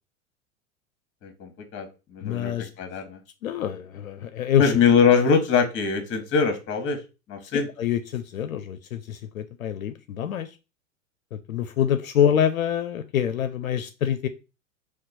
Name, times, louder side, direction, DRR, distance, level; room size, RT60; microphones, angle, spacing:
voice 1, 1.2-3.2 4.6-7.0 7.3-7.7, left 6 dB, 30° left, 6 dB, 1.2 m, -22 dB
voice 2, 2.2-2.7 3.4-4.7 7.5-10.5 11.3-14.3, left 9 dB, 80° left, 10 dB, 0.5 m, -26 dB
4.4 x 2.3 x 3.9 m, 0.30 s
figure-of-eight pair, 90°, 40 cm